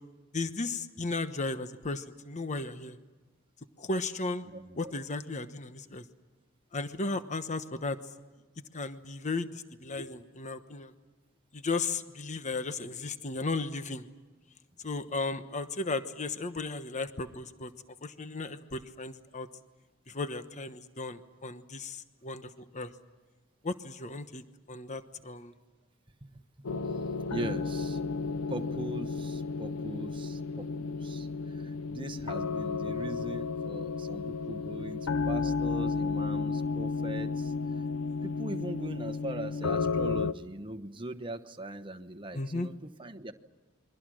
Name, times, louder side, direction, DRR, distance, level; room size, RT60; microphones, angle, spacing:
voice 1, 0.3-3.0 3.8-4.4 4.7-6.0 6.7-8.0 8.7-10.9 11.5-14.1 14.8-17.7 18.0-19.5 20.1-22.9 23.6-24.4 24.7-25.5 42.3-42.7, left 3 dB, 35° left, 10 dB, 1.1 m, -35 dB
voice 2, 4.4-4.9 26.2-26.4 27.3-28.1 28.5-37.5 38.2-43.3, right 1 dB, 25° right, 6 dB, 1.1 m, -40 dB
sound 1, 26.6-40.3, left 4 dB, 85° left, 0.8 m, -32 dB
29.0 x 23.0 x 6.3 m, 1.2 s
head